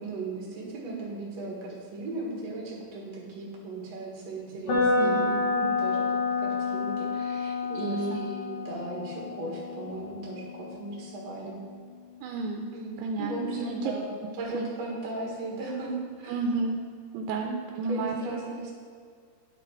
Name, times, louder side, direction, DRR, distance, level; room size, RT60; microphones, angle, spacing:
voice 1, 0.0-11.6 12.7-14.1 14.4-15.9 16.2-16.3 17.4-17.5 17.9-18.7, right 2 dB, 55° right, -4 dB, 2.3 m, -37 dB
sound 1, 4.7-12.6, left 3 dB, 65° left, 3.2 m, -30 dB
voice 2, 5.0-5.4 7.8-8.2 12.2-12.7 13.0-13.9 14.5-14.6 16.3-16.8 17.1-18.2, right 3 dB, 85° right, 2 dB, 2.6 m, -31 dB
10.0 x 4.1 x 4.4 m, 2.1 s
omnidirectional pair, 4.6 m